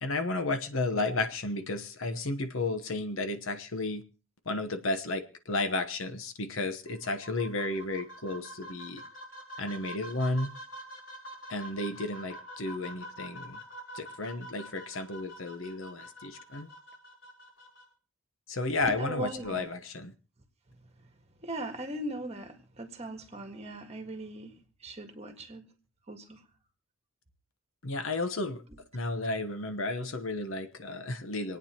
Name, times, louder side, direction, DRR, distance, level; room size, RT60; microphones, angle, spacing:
voice 1, 0.0-4.0 4.5-9.0 9.6-10.5 11.5-13.6 13.9-16.7 18.5-20.1 27.8-28.6 28.9-31.6, left 2 dB, 80° left, 9 dB, 1.1 m, -33 dB
sound 1, 6.9-17.8, equal, 65° left, 4.8 m, -46 dB
voice 2, 18.9-19.7 21.4-25.7 26.1-26.4 28.7-28.8, right 1 dB, 30° right, 5 dB, 1.7 m, -39 dB
26.5 x 9.1 x 2.9 m, 0.36 s
head